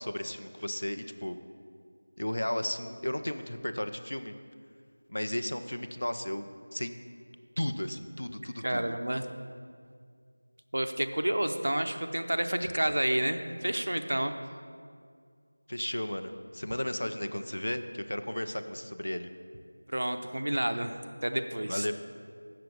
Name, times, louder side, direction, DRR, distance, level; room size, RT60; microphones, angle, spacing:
voice 1, 0.0-1.4 2.2-4.3 5.1-7.0 7.6-9.0 15.7-19.3 21.6-21.9, left 1 dB, 70° left, 9 dB, 0.6 m, -34 dB
voice 2, 8.6-9.2 10.7-14.3 19.9-21.0 21.2-21.9, right 1 dB, 60° right, 7 dB, 0.6 m, -29 dB
7.5 x 6.9 x 6.1 m, 2.2 s
figure-of-eight pair, 180°, 0 cm